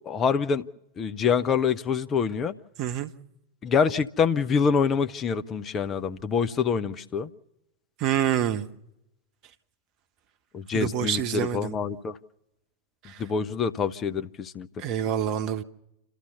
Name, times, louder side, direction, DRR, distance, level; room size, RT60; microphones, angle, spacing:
voice 1, 0.1-0.7 1.0-2.5 3.6-7.3 10.5-12.2 13.2-14.7, left 6 dB, 25° left, 0.8 m, -26 dB
voice 2, 2.8-3.1 8.0-8.7 10.7-11.7 13.0-13.2 14.8-15.6, right 10 dB, 40° right, 1.1 m, -27 dB
29.0 x 13.5 x 7.0 m
figure-of-eight pair, 90°, 0 cm